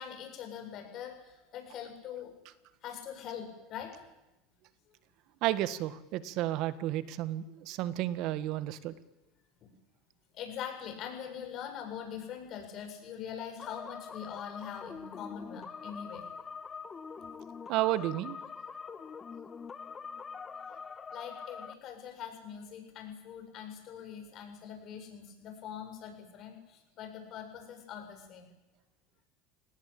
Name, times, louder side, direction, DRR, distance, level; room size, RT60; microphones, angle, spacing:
voice 1, 0.0-2.3 2.8-3.9 10.3-16.3 21.1-28.5, left 8 dB, 50° left, 5 dB, 7.9 m, -43 dB
voice 2, 5.4-8.9 17.7-18.4, right 14 dB, 60° right, 14 dB, 1.6 m, -32 dB
sound 1, 13.6-21.7, left 5 dB, 25° left, 1.4 m, -44 dB
28.5 x 18.5 x 8.8 m, 0.96 s
supercardioid pair, 100°, 0 cm